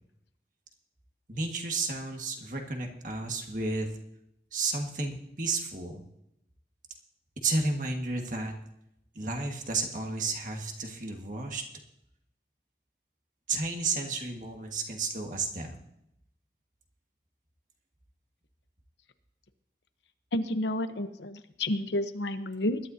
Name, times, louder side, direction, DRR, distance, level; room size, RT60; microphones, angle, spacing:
voice 1, 1.3-3.9 4.5-6.1 7.4-8.5 9.1-11.6 13.5-15.8, right 3 dB, 45° right, 2 dB, 1.7 m, -32 dB
voice 2, 20.3-22.8, left 1 dB, 85° left, 9 dB, 0.9 m, -30 dB
20.5 x 12.0 x 2.8 m, 0.80 s
head